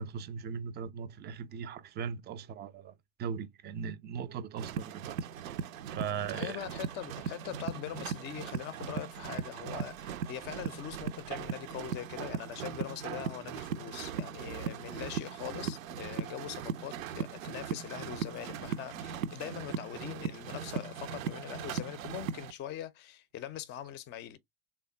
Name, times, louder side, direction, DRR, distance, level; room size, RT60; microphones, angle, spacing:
voice 1, 0.0-2.9 3.2-5.2 5.5-5.6 5.9-6.6, right 6 dB, 25° right, 0.5 m, -39 dB
sound 1, 4.6-22.5, right 7 dB, 75° right, 0.5 m, -38 dB
voice 2, 6.3-24.4, left 11 dB, 25° left, 0.5 m, -42 dB
3.4 x 2.1 x 3.8 m
figure-of-eight pair, 75°, 40 cm